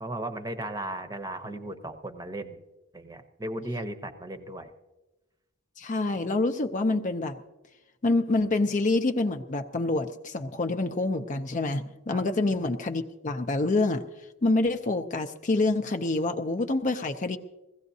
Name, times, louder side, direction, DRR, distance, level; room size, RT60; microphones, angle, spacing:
voice 1, 0.0-2.6 2.9-4.7 12.1-12.2, right 1 dB, 15° right, 7 dB, 0.8 m, -36 dB
voice 2, 5.8-7.4 8.0-14.0 14.4-17.4, left 2 dB, 35° left, 7 dB, 0.6 m, -27 dB
21.0 x 16.0 x 2.7 m, 1.1 s
head